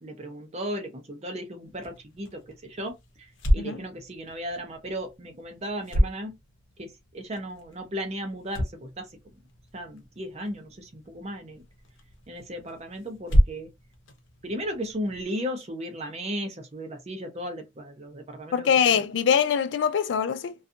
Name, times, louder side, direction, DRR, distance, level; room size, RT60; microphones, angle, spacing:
voice 1, 0.0-6.4 6.8-9.1 9.7-11.6 12.3-13.7 14.4-19.0, equal, 35° right, 0.6 m, -36 dB
sound 1, 1.6-15.2, equal, 85° left, 0.7 m, -31 dB
voice 2, 18.5-20.5, left 7 dB, 65° left, 0.3 m, -23 dB
2.6 x 2.3 x 2.4 m
head